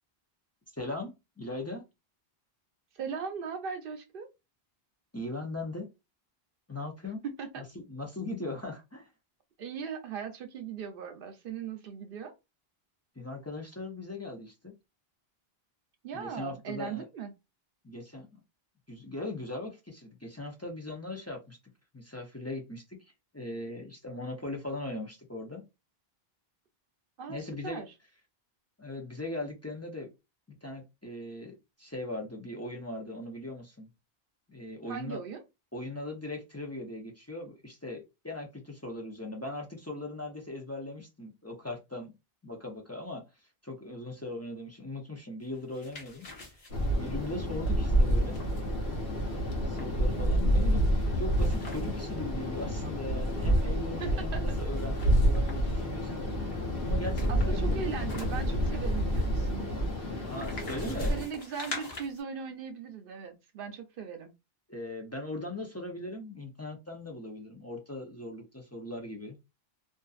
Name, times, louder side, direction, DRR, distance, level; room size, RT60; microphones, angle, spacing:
voice 1, 0.8-1.8 5.1-5.9 6.7-7.2 7.6-9.1 13.2-14.7 16.1-17.0 17.8-18.4 18.9-21.6 21.9-25.6 27.3-27.9 28.8-30.1 30.6-33.9 34.5-35.2 35.7-42.1 42.4-43.2 43.6-46.6 47.0-48.4 49.6-56.2 56.8-58.0 60.2-61.2 64.7-69.4, left 2 dB, 20° left, 0.4 m, -39 dB
voice 2, 2.9-4.3 7.2-7.6 9.6-12.3 16.0-17.3 27.2-27.9 34.9-35.4 54.0-54.6 57.3-59.7 60.8-64.3, right 6 dB, 65° right, 0.7 m, -39 dB
sound 1, 45.5-52.1 52.5-52.6 52.9-54.1 54.7-55.8 56.5-62.2, left 3 dB, 45° left, 0.8 m, -46 dB
sound 2, 46.7-61.3, equal, 80° left, 1.0 m, -28 dB
2.5 x 2.5 x 2.3 m
omnidirectional pair, 1.0 m